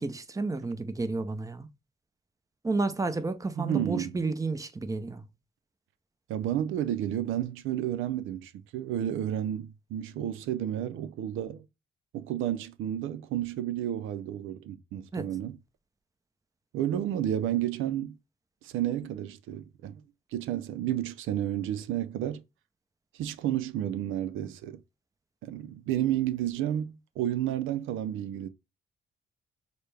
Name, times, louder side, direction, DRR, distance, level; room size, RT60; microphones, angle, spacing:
voice 1, 0.0-1.7 2.6-5.3 15.1-15.3, right 3 dB, 15° right, 0.7 m, -31 dB
voice 2, 3.6-4.1 6.3-11.7 12.1-15.6 16.7-18.2 18.6-20.0 20.3-22.4 23.1-24.8 25.4-28.5, right 11 dB, 85° right, 0.5 m, -31 dB
6.5 x 2.2 x 3.3 m
cardioid pair, 90°, 20 cm